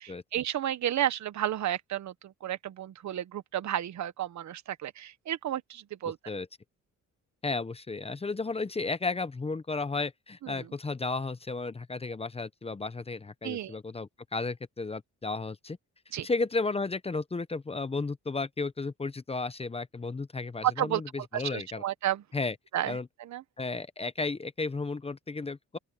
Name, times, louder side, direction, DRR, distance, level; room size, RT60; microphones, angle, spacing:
voice 1, 0.0-6.2 10.4-10.6 13.4-13.8 16.1-16.3 20.6-21.0 21.3-22.2 22.7-23.4, right 11 dB, 65° right, 1.4 m, -32 dB
voice 2, 7.4-15.8 16.2-21.8 22.3-22.6 22.9-23.1 23.6-25.8, left 3 dB, 20° left, 0.8 m, -33 dB
open air
cardioid pair, 90°, 30 cm